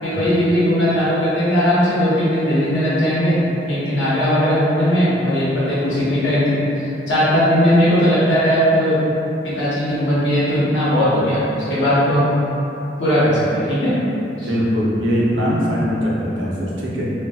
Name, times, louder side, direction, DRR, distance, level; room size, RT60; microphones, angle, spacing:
voice 1, 0.0-3.4 3.7-9.0 9.4-12.4 13.0-14.0 14.4-14.5, equal, 80° left, -9 dB, 0.8 m, -18 dB
voice 2, 14.5-17.1, equal, 85° right, -6 dB, 0.5 m, -21 dB
2.7 x 2.2 x 2.3 m, 2.9 s
head